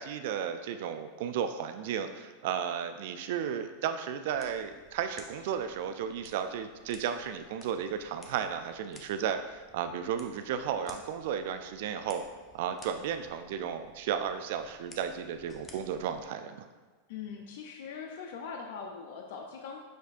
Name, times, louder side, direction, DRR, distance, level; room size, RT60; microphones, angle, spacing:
voice 1, 0.0-12.2 12.5-16.7, right 8 dB, 65° right, 8 dB, 0.3 m, -34 dB
sound 1, 4.3-16.3, left 2 dB, 20° left, 0.7 m, -56 dB
voice 2, 17.1-19.8, left 6 dB, 70° left, 2 dB, 0.4 m, -41 dB
6.4 x 3.1 x 2.5 m, 1.4 s
hypercardioid pair, 110°, 0 cm